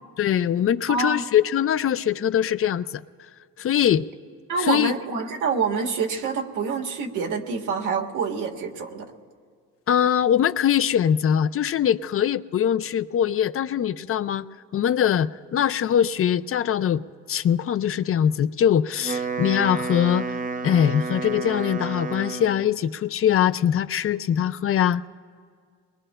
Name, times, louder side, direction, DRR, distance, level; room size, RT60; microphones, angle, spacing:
voice 1, 0.2-3.0 3.6-4.1 4.6-4.9 9.9-14.4 14.7-17.0 17.3-20.3 20.6-25.1, left 9 dB, 45° left, 13 dB, 0.5 m, -22 dB
voice 2, 0.9-1.2 4.5-9.1, right 5 dB, 85° right, 1 dB, 1.6 m, -26 dB
Wind instrument woodwind instrument, 18.9-22.8, right 4 dB, 30° right, 0.6 m, -31 dB
29.5 x 21.5 x 2.2 m, 2.1 s
cardioid pair, 90°, 30 cm